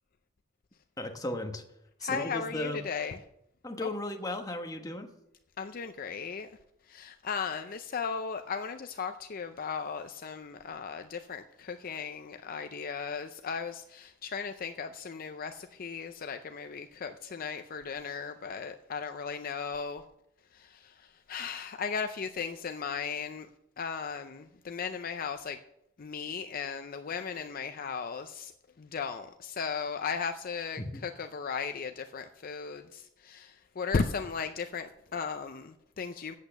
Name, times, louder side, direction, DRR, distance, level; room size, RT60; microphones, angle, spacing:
voice 1, 1.0-1.6 2.0-2.8 3.6-5.1 30.8-31.0, left 1 dB, 20° left, 4 dB, 1.2 m, -35 dB
voice 2, 2.0-3.2 3.8-3.9 5.6-6.5 6.9-20.0 21.3-23.5 23.8-25.6 26.0-28.5 28.8-36.3, left 5 dB, 50° left, 8 dB, 0.5 m, -36 dB
8.5 x 8.1 x 6.6 m, 0.78 s
head